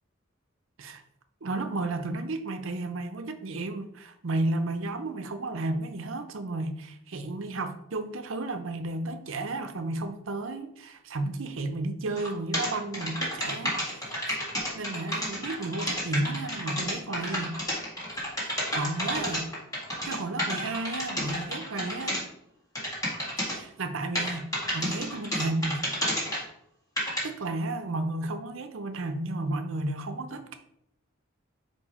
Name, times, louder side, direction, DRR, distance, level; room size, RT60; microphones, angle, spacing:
voice 1, 1.4-14.4 14.8-17.6 18.4-19.5 20.0-22.2 23.4-24.5 24.7-25.8 27.0-30.6, right 2 dB, 75° right, 8 dB, 0.7 m, -33 dB
sound 1, 12.2-12.3 12.5-22.2 22.8-23.5 24.2-26.4 27.0-27.2, equal, 15° left, 1.9 m, -30 dB
4.8 x 4.6 x 4.3 m, 0.75 s
head